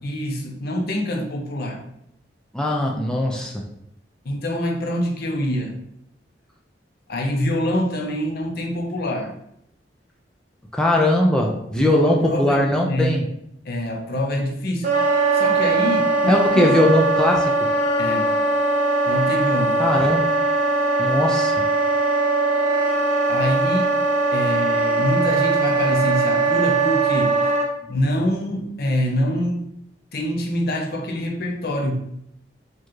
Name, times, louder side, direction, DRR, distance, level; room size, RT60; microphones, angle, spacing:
voice 1, 0.0-1.8 4.2-5.8 7.1-9.3 11.8-13.2 13.7-14.9 15.3-16.7 18.0-18.3 19.1-20.1 23.3-23.9 24.3-27.4 27.9-29.6 30.1-32.0, left 1 dB, 60° left, 2 dB, 0.6 m, -25 dB
voice 2, 2.5-3.6 10.7-13.2 16.3-17.5 19.8-20.3 21.0-21.5, left 1 dB, 5° left, -1 dB, 0.4 m, -20 dB
Wind instrument woodwind instrument, 14.8-27.7, right 3 dB, 45° right, 0.8 m, -20 dB
4.5 x 2.4 x 3.1 m, 0.76 s
head